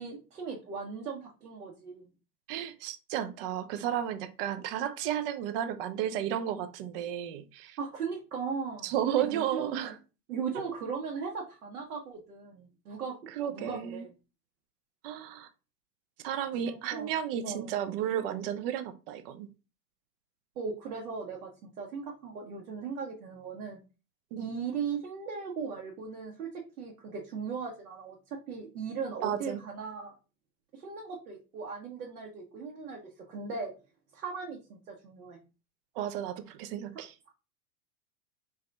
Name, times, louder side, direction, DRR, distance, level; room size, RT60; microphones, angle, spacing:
voice 1, 0.0-2.1 7.8-9.9 10.3-13.2 13.5-14.1 16.6-17.1 17.4-17.7 20.6-23.8 24.4-30.2 30.7-33.7 34.1-35.4 36.9-37.0, right 5 dB, 65° right, 1.2 m, -38 dB
voice 2, 2.5-7.8 8.8-10.0 13.3-14.1 15.0-15.5 16.2-19.5 24.3-24.4 29.2-29.6 36.0-37.1, right 10 dB, 35° right, 0.6 m, -33 dB
4.7 x 2.9 x 3.3 m
figure-of-eight pair, 95°, 49 cm